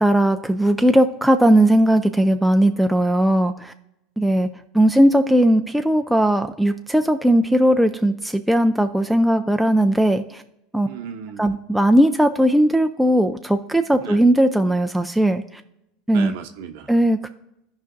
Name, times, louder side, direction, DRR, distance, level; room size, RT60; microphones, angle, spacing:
voice 1, 0.0-3.7 4.2-4.5 4.7-10.4 10.7-10.9 11.4-15.4 16.1-16.3 16.9-17.3, right 1 dB, ahead, 6 dB, 0.3 m, -18 dB
voice 2, 10.9-11.6 14.0-14.2 16.1-17.0, right 7 dB, 75° right, 7 dB, 0.8 m, -36 dB
15.0 x 5.1 x 2.6 m, 0.86 s
supercardioid pair, 130°, 0 cm